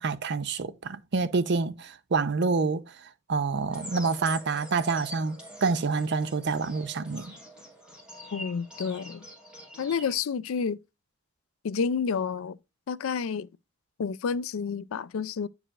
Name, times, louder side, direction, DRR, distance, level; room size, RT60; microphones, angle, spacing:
voice 1, 0.0-2.8 3.3-7.3, right 4 dB, 55° right, 0.6 m, -27 dB
sound 1, 3.7-10.2, equal, 5° right, 2.5 m, -44 dB
voice 2, 8.3-9.2 9.8-10.8 11.6-12.6 12.9-13.5 14.0-15.5, left 6 dB, 75° left, 0.4 m, -29 dB
10.0 x 4.8 x 2.4 m
head